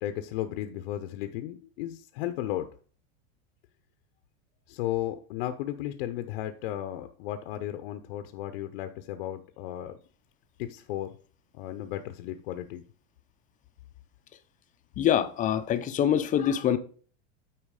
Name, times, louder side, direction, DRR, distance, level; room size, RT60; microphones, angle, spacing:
voice 1, 0.0-2.7 4.7-10.0 10.6-11.1 11.5-12.8, left 13 dB, 60° left, 0.8 m, -34 dB
voice 2, 15.0-16.8, left 10 dB, 25° left, 0.7 m, -25 dB
8.9 x 4.6 x 4.8 m
supercardioid pair, 145°, 32 cm